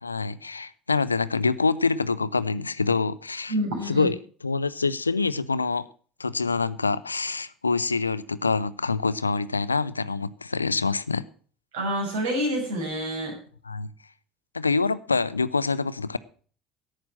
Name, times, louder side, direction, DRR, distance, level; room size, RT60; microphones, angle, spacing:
voice 1, 0.0-3.5 3.9-4.2 4.4-5.9 6.2-11.2 13.7-13.9 14.5-16.2, left 4 dB, 85° left, 16 dB, 0.5 m, -26 dB
voice 2, 3.5-4.1 11.7-13.4, equal, 65° right, 0 dB, 6.2 m, -27 dB
11.5 x 8.8 x 7.4 m, 0.43 s
figure-of-eight pair, 60°, 0 cm